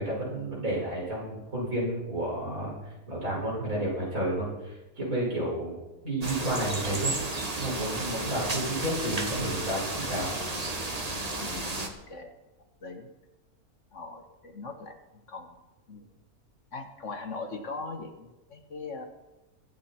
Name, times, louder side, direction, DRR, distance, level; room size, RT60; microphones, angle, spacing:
voice 1, 0.0-5.8 6.0-7.1 7.6-10.3, right 1 dB, 60° right, -4 dB, 6.0 m, -31 dB
sound 1, 6.2-11.9, right 2 dB, 25° right, 1.4 m, -33 dB
voice 2, 11.3-12.3 12.8-13.1 13.9-15.0 15.3-15.6 15.9-16.1 16.7-19.0, left 3 dB, 55° left, 5 dB, 1.6 m, -40 dB
24.0 x 8.3 x 4.3 m, 1.0 s
omnidirectional pair, 1.6 m